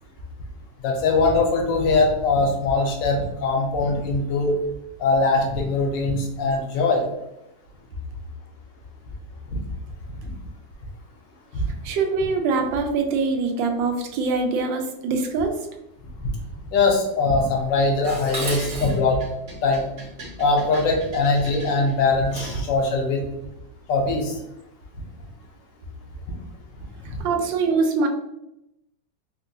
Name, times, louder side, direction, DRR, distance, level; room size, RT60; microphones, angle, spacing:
voice 1, 0.8-4.6 5.0-7.0 9.5-9.6 11.5-11.7 16.7-19.2 19.6-19.8 20.4-23.2 23.9-24.3, left 3 dB, 75° left, 1 dB, 1.4 m, -21 dB
voice 2, 11.8-15.6 27.0-28.1, right 4 dB, 80° right, 4 dB, 1.3 m, -23 dB
Dishes pots and pans, 18.0-22.7, right 1 dB, 45° right, 1.0 m, -36 dB
3.5 x 2.6 x 2.6 m, 0.85 s
omnidirectional pair, 2.0 m